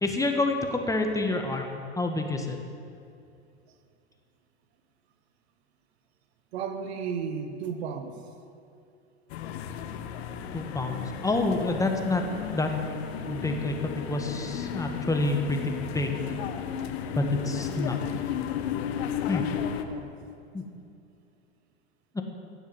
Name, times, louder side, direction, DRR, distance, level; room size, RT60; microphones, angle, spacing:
voice 1, 0.0-2.6 10.5-12.2 12.5-12.7 13.3-16.4 17.1-18.0 19.3-19.4 20.5-20.7 22.1-22.2, left 2 dB, 10° left, 3 dB, 1.6 m, -28 dB
voice 2, 6.5-8.3 16.6-17.0 19.9-20.1, right 6 dB, 70° right, 8 dB, 1.4 m, -35 dB
sound 1, 9.3-19.8, left 9 dB, 65° left, 1.2 m, -34 dB
16.5 x 7.3 x 7.8 m, 2.6 s
hypercardioid pair, 95°, 34 cm